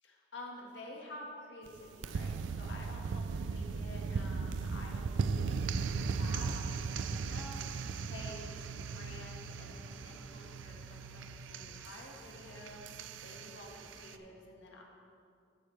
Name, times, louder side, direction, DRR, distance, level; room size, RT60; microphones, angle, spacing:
voice 1, 0.0-11.2 11.5-14.8, left 1 dB, 75° left, -1 dB, 1.8 m, -50 dB
sound 1, 1.7-14.2, right 5 dB, 80° right, 0.4 m, -38 dB
sound 2, 4.1-8.0, equal, 35° right, 1.7 m, -53 dB
sound 3, 6.2-14.2, equal, 5° left, 1.3 m, -59 dB
14.5 x 8.2 x 3.4 m, 2.4 s
head